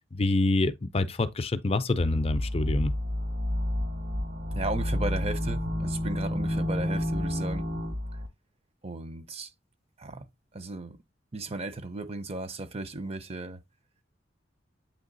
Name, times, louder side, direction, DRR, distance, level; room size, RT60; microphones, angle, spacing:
voice 1, 0.1-2.9, left 2 dB, 30° left, 0.5 m, -26 dB
sound 1, 2.0-8.3, left 1 dB, 70° right, 1.9 m, -30 dB
voice 2, 4.5-7.6 8.8-9.5 10.0-10.3 10.5-11.0 11.3-13.6, right 2 dB, 30° right, 0.6 m, -35 dB
8.2 x 3.4 x 3.9 m
head